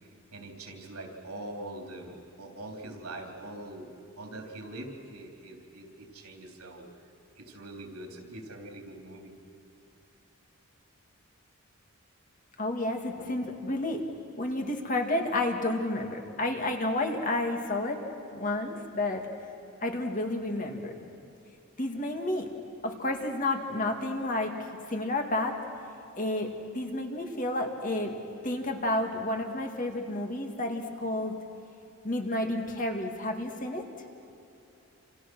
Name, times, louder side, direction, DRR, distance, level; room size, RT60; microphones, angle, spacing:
voice 1, 0.3-3.9 4.2-6.8 7.4-9.3 13.2-13.3, right 1 dB, 85° right, 2 dB, 3.5 m, -43 dB
voice 2, 12.6-14.1 14.4-18.0 18.3-19.3 19.8-20.9 21.8-22.5 22.8-24.5 24.9-25.6 26.2-28.2 28.4-31.3 32.0-33.8, left 1 dB, 35° left, 3 dB, 2.3 m, -30 dB
28.0 x 28.0 x 6.3 m, 2.9 s
head